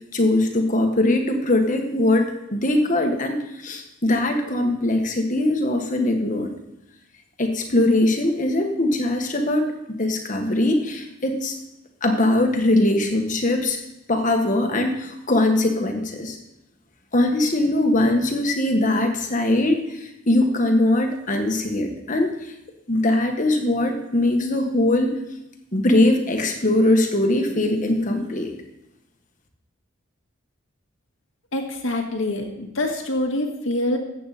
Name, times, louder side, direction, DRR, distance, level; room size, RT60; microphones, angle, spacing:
voice 1, 0.1-6.5 7.4-9.7 10.0-11.5 12.0-13.8 14.1-16.4 17.1-22.3 22.9-25.1 25.7-28.5, left 1 dB, 40° left, 4 dB, 1.5 m, -21 dB
voice 2, 31.5-34.0, left 1 dB, 75° left, 2 dB, 1.9 m, -25 dB
14.5 x 8.3 x 4.2 m, 0.88 s
head